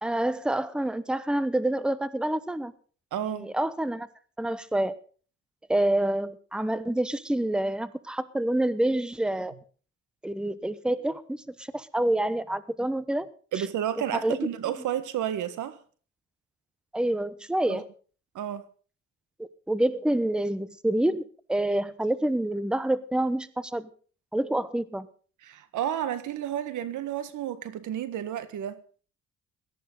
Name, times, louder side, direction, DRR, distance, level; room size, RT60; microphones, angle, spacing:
voice 1, 0.0-2.7 3.2-4.1 4.4-5.0 5.7-9.5 10.2-13.3 13.6-13.7 14.1-14.4 16.9-17.9 19.4-23.9 24.3-25.1, right 1 dB, 5° right, 1.1 m, -27 dB
voice 2, 3.1-3.5 13.5-15.8 17.7-17.8 18.3-18.6 25.4-28.8, right 10 dB, 80° right, 1.7 m, -31 dB
17.5 x 12.5 x 4.0 m
cardioid pair, 90°, 30 cm